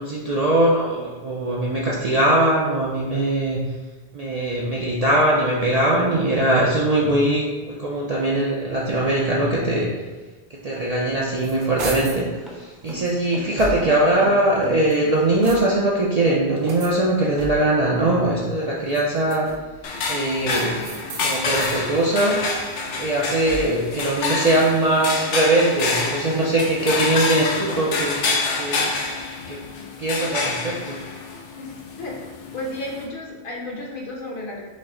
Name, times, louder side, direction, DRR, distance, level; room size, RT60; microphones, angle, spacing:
voice 1, 0.0-3.6 4.1-9.9 10.6-19.5 20.1-20.9 21.2-22.4 23.0-28.9 29.5-29.6 30.0-31.0, right 1 dB, 50° right, -5 dB, 0.5 m, -21 dB
sound 1, 10.5-15.3, equal, ahead, 0.6 m, -40 dB
sound 2, 11.0-12.3 12.9-14.1 14.7-16.0 16.6-17.9 18.8-19.8 20.4-21.8 22.3-23.9, right 2 dB, 85° right, 1.0 m, -36 dB
sound 3, 19.8-33.1, left 3 dB, 85° left, 0.9 m, -27 dB
voice 2, 32.5-34.6, left 1 dB, 55° left, -3 dB, 1.0 m, -32 dB
5.4 x 2.1 x 3.6 m, 1.3 s
omnidirectional pair, 1.2 m